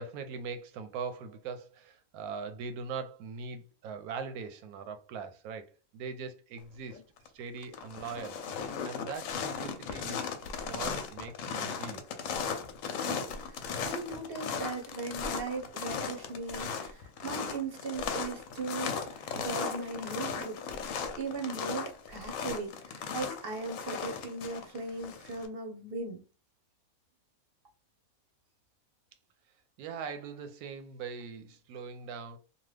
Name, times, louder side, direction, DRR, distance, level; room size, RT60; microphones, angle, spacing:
voice 1, 0.0-7.0 7.3-8.4 8.8-12.1 29.8-32.4, right 5 dB, 90° right, 1.1 m, -41 dB
sound 1, 6.9-7.3 7.6-25.5, left 6 dB, 70° left, 0.9 m, -37 dB
voice 2, 13.0-20.6 21.2-26.2, right 3 dB, 55° right, 0.7 m, -38 dB
2.8 x 2.3 x 3.2 m
omnidirectional pair, 1.5 m